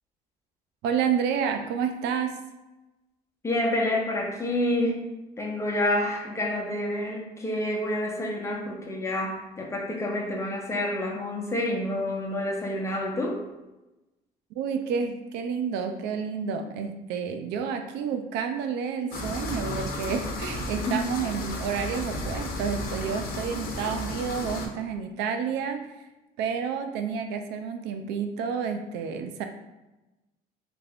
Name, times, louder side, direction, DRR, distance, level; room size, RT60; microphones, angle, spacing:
voice 1, 0.8-2.3 14.6-25.8 26.4-29.4, right 6 dB, 85° right, 6 dB, 0.4 m, -30 dB
voice 2, 3.4-5.1 5.4-13.4 20.9-21.1, left 1 dB, 15° left, -1 dB, 0.8 m, -28 dB
sound 1, 19.1-24.7, left 1 dB, 60° left, 0.7 m, -33 dB
3.3 x 2.4 x 3.5 m, 1.0 s
cardioid pair, 110°, 17 cm